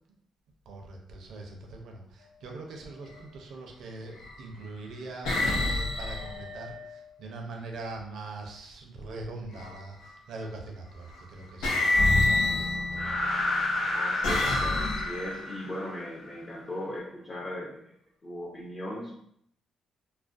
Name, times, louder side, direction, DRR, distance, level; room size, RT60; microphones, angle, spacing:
voice 1, 0.7-13.2, right 2 dB, 75° right, 1 dB, 0.5 m, -42 dB
sound 1, 3.0-3.3 4.1-4.6 5.2-7.3 9.5-10.1 11.1-11.2 11.6-13.2 13.8-15.5, left 2 dB, 90° left, 0.5 m, -29 dB
sound 2, 11.9-16.3, left 2 dB, 60° left, 0.9 m, -30 dB
voice 2, 13.9-17.9 18.2-19.1, left 1 dB, 30° left, -4 dB, 0.5 m, -38 dB
2.3 x 2.1 x 2.5 m, 0.71 s
cardioid pair, 90°, 0 cm